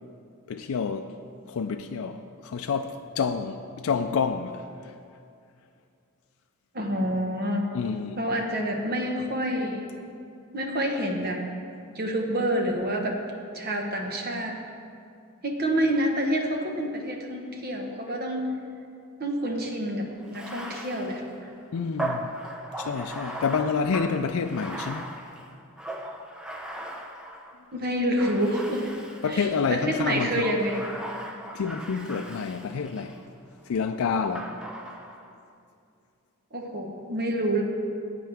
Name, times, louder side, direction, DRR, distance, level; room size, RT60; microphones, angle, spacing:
voice 1, 0.5-1.1 1.5-5.0 7.7-8.2 21.7-22.3 22.8-25.1 29.2-30.5 31.5-33.2 33.7-34.5, left 5 dB, 75° left, 0.4 m, -28 dB
voice 2, 6.7-7.6 8.2-9.9 10.5-11.4 11.9-13.2 13.5-14.6 15.4-18.5 19.2-21.5 27.7-28.8 29.3-30.8 36.5-37.6, right 1 dB, 45° right, 1.3 m, -28 dB
Bathtub (filling or washing), 20.2-27.6 28.2-29.5 30.0-33.2 34.4-35.3, right 1 dB, 5° right, 0.7 m, -38 dB
15.0 x 8.6 x 3.5 m
head